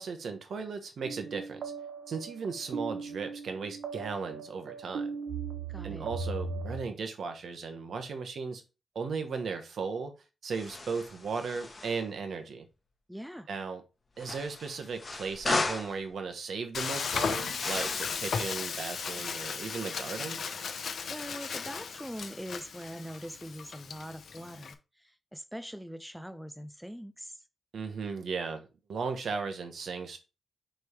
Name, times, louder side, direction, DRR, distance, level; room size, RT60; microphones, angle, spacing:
voice 1, 0.0-1.6 2.1-5.1 5.8-8.6 8.9-10.1 10.4-12.6 13.5-13.8 14.2-20.4 27.7-30.2, right 5 dB, 60° right, 1.2 m, -36 dB
sound 1, 1.0-6.8, right 4 dB, 80° right, 0.8 m, -38 dB
voice 2, 5.7-6.1 13.1-13.5 21.1-27.4, equal, ahead, 0.4 m, -43 dB
sound 2, 10.5-12.0 14.2-16.0 17.6-18.2, left 3 dB, 25° left, 1.0 m, -35 dB
Frying (food), 16.7-24.7, left 6 dB, 55° left, 0.7 m, -36 dB
6.2 x 3.4 x 4.7 m
wide cardioid pair, 175°, 0 cm